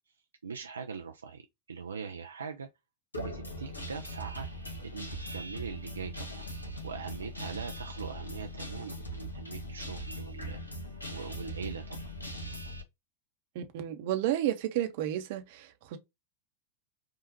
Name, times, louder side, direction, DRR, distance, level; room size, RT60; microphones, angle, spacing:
voice 1, 0.4-2.7 3.2-4.5 4.8-6.5 6.8-10.6 11.1-12.0, right 5 dB, 75° right, 0.4 m, -41 dB
Guitar, 3.1-12.8, equal, 80° left, 1.2 m, -40 dB
voice 2, 13.5-16.0, right 12 dB, 50° right, 0.8 m, -32 dB
5.0 x 2.4 x 2.9 m
figure-of-eight pair, 90°, 0 cm